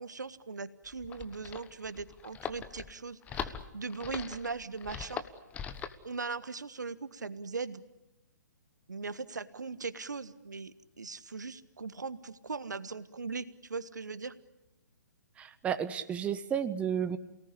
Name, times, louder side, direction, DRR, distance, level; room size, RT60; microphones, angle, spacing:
voice 1, 0.0-5.2 6.0-7.8 8.9-14.3, right 4 dB, 70° right, 14 dB, 1.4 m, -39 dB
sound 1, 0.8-6.0, left 7 dB, 15° left, 1.2 m, -41 dB
voice 2, 15.4-17.2, right 8 dB, 10° right, 12 dB, 1.1 m, -32 dB
29.0 x 18.5 x 10.0 m, 0.97 s
figure-of-eight pair, 130°, 10 cm